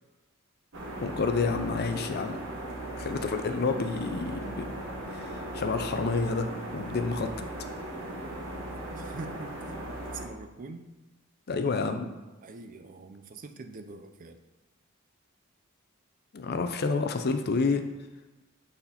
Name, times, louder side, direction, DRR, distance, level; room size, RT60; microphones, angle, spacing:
sound 1, 0.7-10.3, right 1 dB, 60° right, 1.3 m, -38 dB
voice 1, 1.0-2.4 3.0-4.7 5.1-7.3 11.5-12.1 16.3-17.8, left 4 dB, 50° left, 7 dB, 0.5 m, -29 dB
voice 2, 9.0-9.7 10.1-10.9 12.4-14.4, right 3 dB, 40° right, 8 dB, 0.4 m, -44 dB
7.9 x 4.2 x 4.2 m, 1.1 s
head